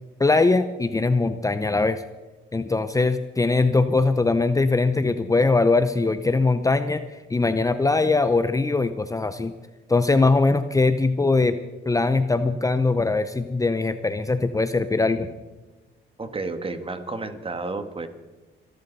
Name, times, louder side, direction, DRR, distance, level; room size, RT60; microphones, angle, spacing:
voice 1, 0.2-2.0 2.5-9.5 9.9-11.6 11.9-15.3, left 3 dB, 15° left, 11 dB, 0.7 m, -21 dB
voice 2, 16.2-18.1, right 3 dB, 25° right, 9 dB, 1.8 m, -31 dB
25.5 x 12.0 x 4.2 m, 1.2 s
cardioid pair, 90°, 20 cm